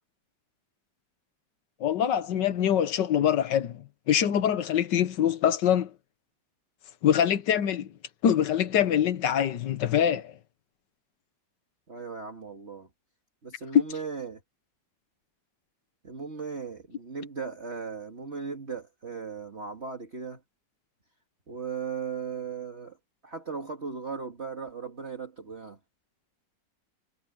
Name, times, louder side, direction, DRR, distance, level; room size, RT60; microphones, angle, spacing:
voice 1, 1.8-5.9 7.0-7.9 8.2-10.3 13.7-13.8, left 9 dB, 75° left, 1.7 m, -24 dB
voice 2, 11.9-12.9 13.4-14.4 16.0-20.4 21.5-23.0 23.2-25.8, right 5 dB, 40° right, 2.1 m, -37 dB
omnidirectional pair, 1.9 m